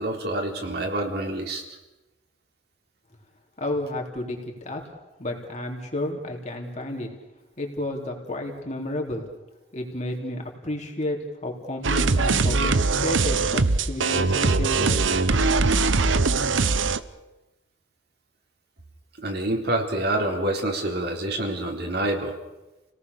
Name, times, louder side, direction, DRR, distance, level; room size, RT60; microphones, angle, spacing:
voice 1, 0.0-1.6 19.2-22.3, right 1 dB, 55° right, 2 dB, 3.7 m, -27 dB
voice 2, 3.6-4.8 5.2-7.1 7.6-9.3 9.7-15.1, left 1 dB, 35° left, 1 dB, 3.7 m, -31 dB
sound 1, 11.8-17.0, right 3 dB, 90° right, 0.9 m, -21 dB
29.5 x 18.5 x 6.9 m, 1.0 s
head